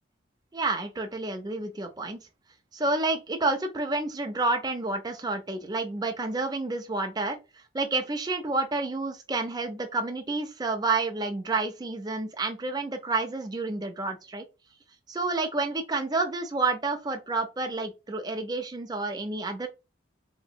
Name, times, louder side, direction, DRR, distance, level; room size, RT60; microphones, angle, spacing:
voice 1, 0.5-2.3 2.7-7.4 7.7-14.4 15.1-19.7, right 3 dB, 20° right, 0.5 m, -29 dB
2.9 x 2.9 x 2.2 m
head